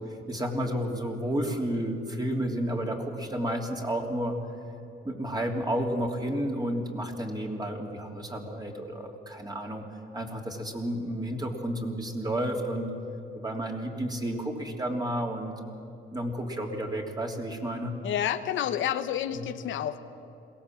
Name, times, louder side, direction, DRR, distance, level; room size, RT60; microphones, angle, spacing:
voice 1, 0.1-4.4 5.0-9.8 10.1-12.9 13.3-15.5 16.1-17.9 19.3-19.4, right 1 dB, 20° right, 1 dB, 3.3 m, -31 dB
voice 2, 18.0-20.0, left 10 dB, 75° left, 9 dB, 1.0 m, -29 dB
22.0 x 17.5 x 7.6 m, 3.0 s
cardioid pair, 90°, 20 cm